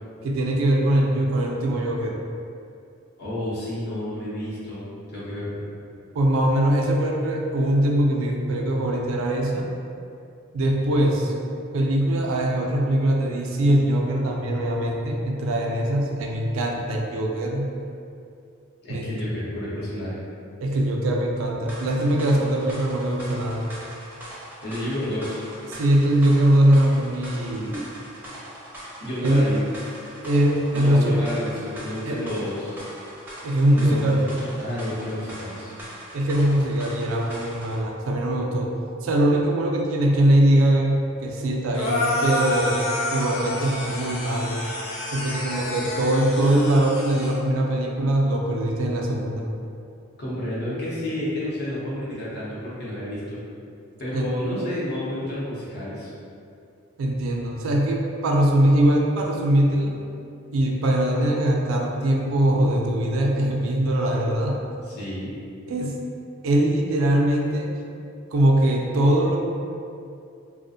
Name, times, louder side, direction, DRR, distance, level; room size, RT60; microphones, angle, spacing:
voice 1, 0.2-2.2 6.1-9.7 10.5-11.3 11.7-17.7 18.9-19.1 20.6-23.6 25.7-27.9 29.2-29.5 30.2-31.3 32.1-32.2 33.4-34.2 36.1-38.7 39.0-42.8 43.1-44.6 45.1-49.4 54.1-54.6 57.0-60.0 60.5-64.6 65.7-66.0 66.4-67.7 68.3-69.4, right 1 dB, 70° right, 1 dB, 0.3 m, -22 dB
voice 2, 3.2-5.7 18.8-20.2 24.6-25.4 29.0-29.6 30.7-32.8 33.7-34.3 34.6-35.7 50.2-53.4 54.0-56.1 64.8-65.3, left 1 dB, 55° left, -8 dB, 0.8 m, -30 dB
sound 1, 21.7-37.8, right 1 dB, 10° right, 0.5 m, -41 dB
sound 2, 41.7-47.4, left 1 dB, 75° left, 0.4 m, -29 dB
2.4 x 2.1 x 2.6 m, 2.5 s
head